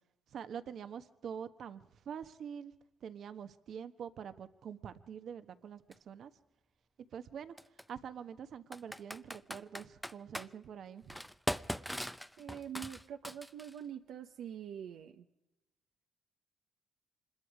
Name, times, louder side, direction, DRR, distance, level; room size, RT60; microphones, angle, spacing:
voice 1, 0.3-2.7 3.0-6.3 7.1-7.5 7.9-11.1, right 8 dB, 65° right, 10 dB, 1.2 m, -45 dB
Computer keyboard, 5.9-6.0 7.6-7.8 8.7-10.5 11.1-13.8, equal, ahead, 0.6 m, -40 dB
voice 2, 12.4-15.3, right 9 dB, 80° right, 5 dB, 1.0 m, -45 dB
25.5 x 21.5 x 4.9 m, 0.95 s
cardioid pair, 90°, 0 cm